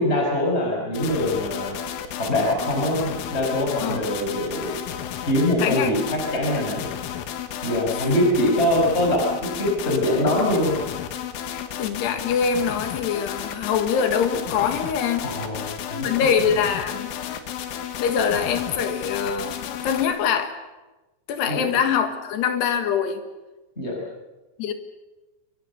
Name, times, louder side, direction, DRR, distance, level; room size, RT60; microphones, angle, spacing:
voice 1, 0.0-1.8 2.2-4.7 5.2-6.9 7.6-10.8 15.2-16.1 21.5-21.6 23.8-24.0, left 1 dB, 15° left, -1 dB, 4.9 m, -23 dB
sound 1, 0.9-20.1, left 9 dB, 85° left, 4.1 m, -33 dB
voice 2, 5.6-6.2 8.0-8.1 8.5-8.6 11.5-15.3 15.9-17.1 18.0-20.5 21.3-23.2 24.6-24.7, left 7 dB, 70° left, 8 dB, 3.6 m, -24 dB
26.5 x 23.5 x 7.0 m, 1.1 s
omnidirectional pair, 5.4 m